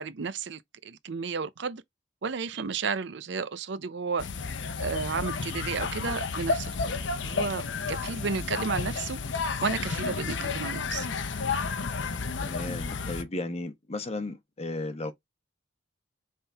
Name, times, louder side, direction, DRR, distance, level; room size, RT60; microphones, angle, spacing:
voice 1, 0.0-1.8 2.2-4.3 4.8-6.8 7.2-9.2 9.6-11.1, right 5 dB, 60° right, 0.5 m, -32 dB
sound 1, 4.2-13.2, left 4 dB, 65° left, 0.7 m, -31 dB
voice 2, 12.4-15.1, left 2 dB, 30° left, 1.0 m, -34 dB
4.1 x 3.7 x 3.4 m
head